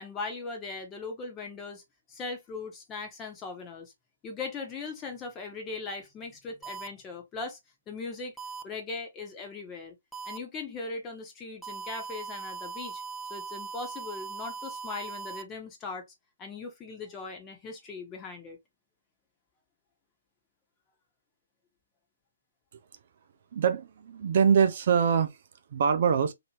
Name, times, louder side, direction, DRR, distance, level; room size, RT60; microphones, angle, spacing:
voice 1, 0.0-1.8 2.1-3.9 4.2-7.6 7.9-8.4 8.6-9.9 10.2-13.0 13.3-16.1 16.4-18.6, left 4 dB, 20° left, 1.1 m, -39 dB
sound 1, 6.6-6.9 8.4-8.6 10.1-10.4 11.6-15.4, right 5 dB, ahead, 0.6 m, -39 dB
voice 2, 23.5-25.4 25.7-26.3, right 7 dB, 50° right, 0.5 m, -24 dB
2.9 x 2.9 x 2.8 m
figure-of-eight pair, 135°, 0 cm